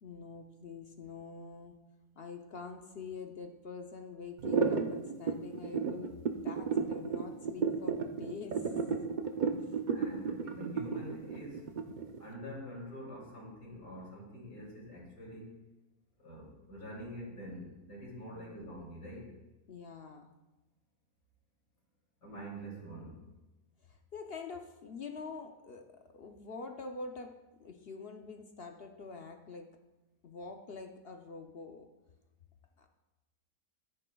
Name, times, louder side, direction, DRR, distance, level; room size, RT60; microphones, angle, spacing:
voice 1, 0.0-1.8 2.2-6.2 6.4-8.7 9.6-9.8 18.3-18.6 19.7-20.3 23.8-29.7 30.2-31.9 32.8-32.9, left 4 dB, 55° left, 4 dB, 0.7 m, -46 dB
sound 1, 4.4-12.2, right 5 dB, 70° right, 0.4 m, -32 dB
voice 2, 9.9-11.7 12.2-15.5 16.2-19.3 22.2-23.2, equal, 75° left, -3 dB, 3.4 m, -45 dB
13.5 x 9.8 x 2.3 m, 1.1 s
omnidirectional pair, 1.7 m